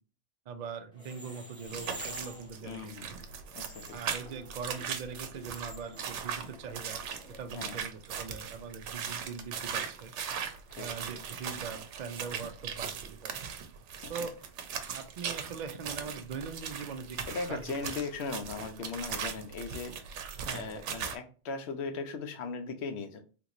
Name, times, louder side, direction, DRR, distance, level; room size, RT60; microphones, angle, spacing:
voice 1, 0.5-2.9 3.9-7.0 7.4-10.1 10.8-13.4 14.1-14.4 14.9-17.2 17.5-17.9 20.5-20.9, right 5 dB, 60° right, 7 dB, 0.4 m, -41 dB
sound 1, 0.9-7.4, equal, 5° left, 0.9 m, -49 dB
sound 2, 1.7-21.2, right 7 dB, 85° right, 0.9 m, -39 dB
voice 2, 2.6-3.1 3.5-4.0 7.5-7.8 10.8-10.9 14.0-14.1 17.3-19.9 20.5-23.2, left 4 dB, 70° left, 8 dB, 0.8 m, -38 dB
3.5 x 2.9 x 2.5 m, 0.38 s
omnidirectional pair, 1.2 m